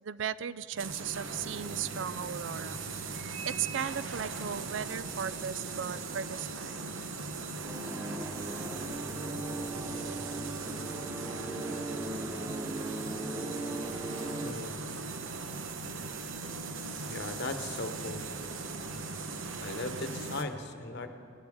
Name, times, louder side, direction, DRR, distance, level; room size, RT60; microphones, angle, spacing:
voice 1, 0.0-2.8 3.5-6.8, right 8 dB, 65° right, 16 dB, 0.4 m, -36 dB
sound 1, 0.8-20.4, right 3 dB, 85° right, 0.9 m, -39 dB
sound 2, 7.6-14.5, right 1 dB, 15° right, 0.7 m, -38 dB
voice 2, 14.4-14.8 17.1-18.2 19.6-21.1, left 2 dB, 60° left, 8 dB, 1.0 m, -38 dB
20.0 x 10.5 x 4.9 m, 2.4 s
head